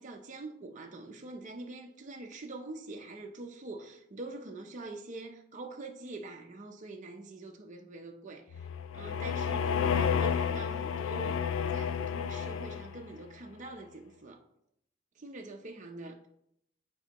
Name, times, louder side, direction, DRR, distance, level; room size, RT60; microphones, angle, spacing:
voice 1, 0.0-8.7 8.9-14.4 15.2-16.3, right 2 dB, 40° right, 0.6 m, -45 dB
sound 1, 8.5-13.1, left 7 dB, 75° left, 0.4 m, -31 dB
9.6 x 4.4 x 2.9 m
head